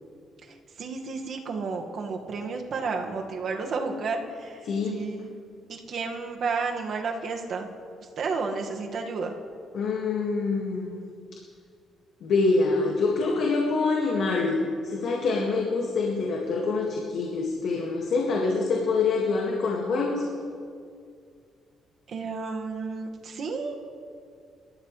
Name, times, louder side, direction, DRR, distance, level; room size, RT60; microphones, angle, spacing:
voice 1, 0.4-5.3 5.7-7.7 8.2-9.3 22.1-23.8, right 4 dB, 55° right, 2 dB, 1.8 m, -32 dB
voice 2, 4.6-5.0 9.7-11.0 12.2-14.6 14.8-20.2, left 4 dB, 65° left, -1 dB, 2.0 m, -25 dB
26.0 x 13.5 x 3.3 m, 2.3 s
cardioid pair, 125°, 0 cm